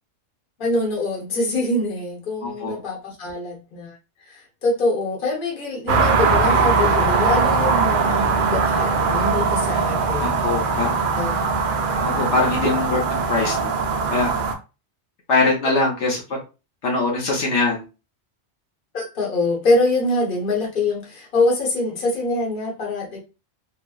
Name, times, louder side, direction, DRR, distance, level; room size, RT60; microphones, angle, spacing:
voice 1, 0.6-3.9 4.3-10.4 11.1-11.4 18.9-23.2, left 2 dB, 50° left, -3 dB, 1.1 m, -24 dB
voice 2, 2.4-2.8 10.2-11.0 12.0-13.7 14.1-14.3 15.3-16.4 16.8-17.8, left 3 dB, 75° left, -2 dB, 1.1 m, -22 dB
sound 1, 5.9-14.5, right 4 dB, 60° right, 0.6 m, -20 dB
3.3 x 2.1 x 2.3 m, 0.30 s
omnidirectional pair, 1.2 m